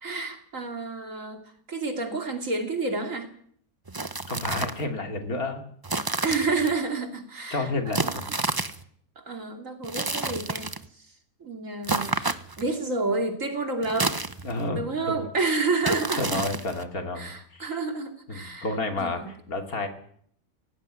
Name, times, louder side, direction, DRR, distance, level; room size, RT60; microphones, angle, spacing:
voice 1, 0.0-3.3 6.2-8.2 9.2-11.0 11.4-14.2 14.7-16.5 17.1-18.7 19.0-19.3, right 3 dB, 55° right, 5 dB, 3.2 m, -30 dB
sound 1, 3.9-4.8 5.8-6.7 7.9-8.8 9.8-10.9 11.8-12.7 13.8-14.7 15.8-16.8, right 3 dB, 20° right, 0.7 m, -30 dB
voice 2, 4.3-5.6 7.5-8.3 14.4-15.3 16.1-17.7 18.3-19.9, left 2 dB, 70° left, 5 dB, 3.1 m, -31 dB
17.5 x 15.5 x 10.0 m, 0.63 s
omnidirectional pair, 1.6 m